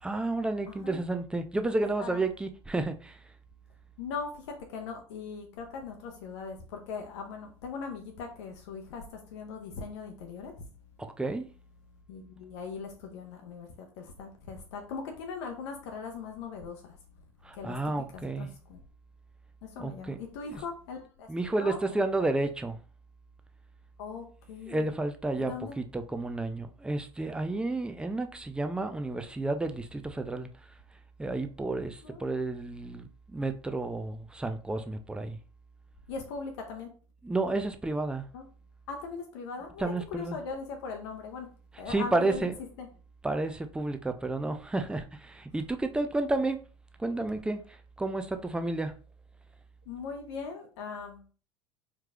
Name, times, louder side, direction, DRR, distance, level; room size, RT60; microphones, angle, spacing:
voice 1, 0.0-3.3 11.0-11.5 17.4-18.5 19.8-20.2 20.5-20.6 21.3-22.8 24.7-30.7 31.2-35.4 37.2-38.3 39.8-40.4 41.9-42.6 43.2-46.6 47.0-48.9, right 2 dB, 5° right, 0.5 m, -31 dB
voice 2, 0.7-1.0 1.8-2.2 4.0-10.7 12.1-17.0 17.5-18.8 19.6-22.0 24.0-24.9 25.4-25.8 32.0-32.2 36.1-36.9 38.3-38.4 38.9-41.5 41.8-42.5 42.8-42.9 49.9-51.2, left 5 dB, 60° left, 0.7 m, -40 dB
4.5 x 3.1 x 2.4 m
figure-of-eight pair, 75°, 16 cm